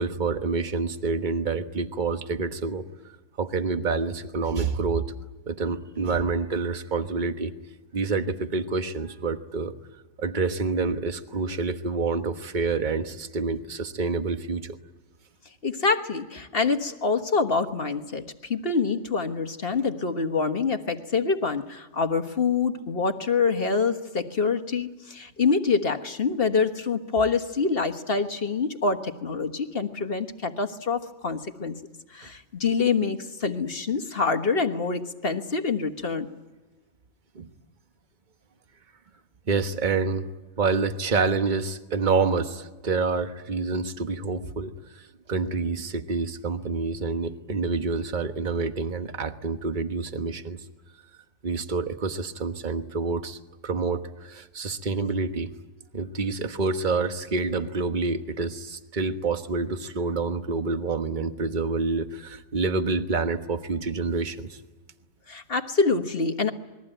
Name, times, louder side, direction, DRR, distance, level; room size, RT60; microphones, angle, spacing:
voice 1, 0.0-2.9 3.4-5.1 5.5-7.5 7.9-9.7 10.2-14.8 37.3-37.5 39.5-40.3 40.6-44.7 45.3-50.6 51.4-53.4 53.6-55.5 55.9-64.5, right 4 dB, 35° right, 8 dB, 1.4 m, -27 dB
voice 2, 15.6-31.8 32.1-36.3 65.3-66.5, left 4 dB, 40° left, 7 dB, 1.6 m, -26 dB
28.0 x 21.5 x 9.1 m, 1.2 s
omnidirectional pair, 1.6 m